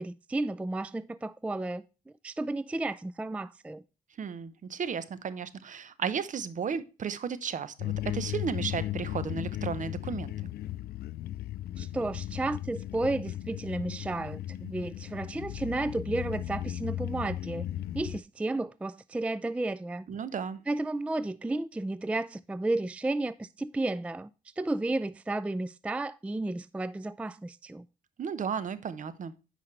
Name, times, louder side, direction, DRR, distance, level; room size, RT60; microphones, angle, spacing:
voice 1, 0.0-1.8 2.2-3.8 11.8-17.7 17.9-20.1 20.7-24.3 24.6-27.8, right 2 dB, 10° right, 0.3 m, -32 dB
voice 2, 4.2-10.5 20.1-20.6 28.2-29.3, right 6 dB, 50° right, 0.8 m, -34 dB
sound 1, 7.8-18.2, left 13 dB, 75° left, 0.4 m, -36 dB
9.7 x 5.1 x 3.2 m
cardioid pair, 80°, 16 cm